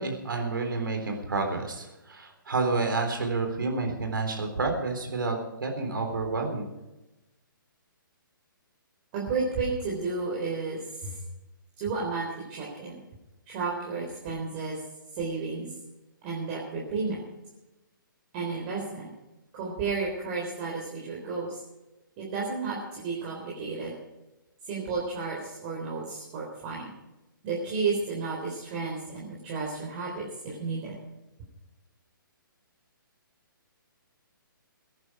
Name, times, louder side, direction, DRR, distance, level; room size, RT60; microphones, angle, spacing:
voice 1, 0.0-5.4 5.6-6.7, right 3 dB, 70° right, 4 dB, 3.8 m, -29 dB
voice 2, 9.1-11.1 11.8-13.0 13.5-14.7 15.1-15.7 16.2-17.2 18.3-19.1 19.5-21.6 22.2-23.9 24.7-26.9 27.4-30.9, right 4 dB, 30° right, -4 dB, 4.0 m, -32 dB
20.0 x 10.5 x 5.1 m, 1.0 s
figure-of-eight pair, 135°, 12 cm